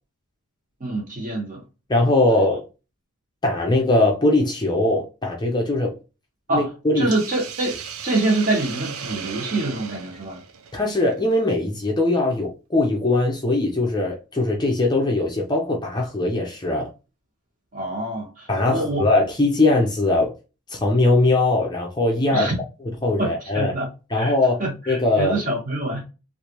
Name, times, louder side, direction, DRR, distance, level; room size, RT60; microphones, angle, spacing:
voice 1, 0.8-1.6 6.5-6.7 7.0-7.8 8.0-10.4 17.7-19.1 22.3-22.6 23.2-24.3 24.6-26.0, right 2 dB, 35° right, 1.2 m, -25 dB
voice 2, 1.9-2.6 3.4-5.9 6.5-7.1 10.7-16.9 18.5-20.3 20.7-22.5 23.0-23.7 24.1-25.4, left 2 dB, 20° left, 0.5 m, -21 dB
Hiss, 7.1-11.4, right 7 dB, 70° right, 0.5 m, -36 dB
3.2 x 2.5 x 2.9 m
head